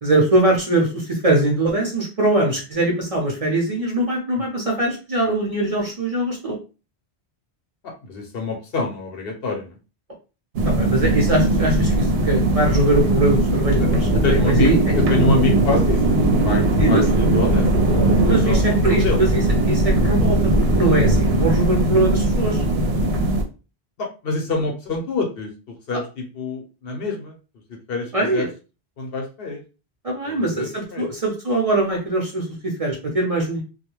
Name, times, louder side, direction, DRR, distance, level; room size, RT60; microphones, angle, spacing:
voice 1, 0.0-6.6 10.6-14.8 16.8-17.0 18.2-22.6 28.1-28.5 30.0-33.6, right 2 dB, 40° right, -1 dB, 0.6 m, -22 dB
voice 2, 7.8-9.8 13.8-13.9 14.2-16.0 16.4-17.7 18.4-19.2 24.0-27.4 27.7-28.4 29.0-29.6 30.3-31.1, left 3 dB, 65° left, 2 dB, 0.9 m, -26 dB
sound 1, 10.6-23.4, right 1 dB, 75° right, 0.8 m, -19 dB
2.3 x 2.2 x 3.0 m, 0.32 s
omnidirectional pair, 1.1 m